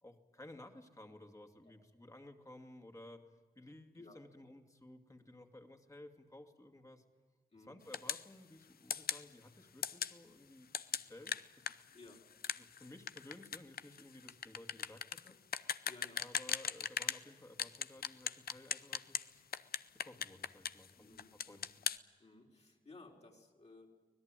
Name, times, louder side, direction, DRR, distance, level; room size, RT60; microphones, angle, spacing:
voice 1, 0.0-3.2 3.6-7.0 7.7-11.8 12.6-15.4 16.1-19.4 19.9-21.1 21.5-21.7, left 1 dB, 20° left, 5 dB, 2.5 m, -56 dB
sound 1, 7.9-8.3 8.9-9.2 9.8-10.1 10.7-17.2 17.6-19.3 19.5-20.9 21.2-22.0, left 8 dB, 80° left, 0.7 m, -38 dB
voice 2, 15.8-16.2 20.9-21.7 22.2-23.9, left 3 dB, 45° left, 1 dB, 4.2 m, -57 dB
24.5 x 18.0 x 9.1 m, 1.4 s
cardioid pair, 80°, 15 cm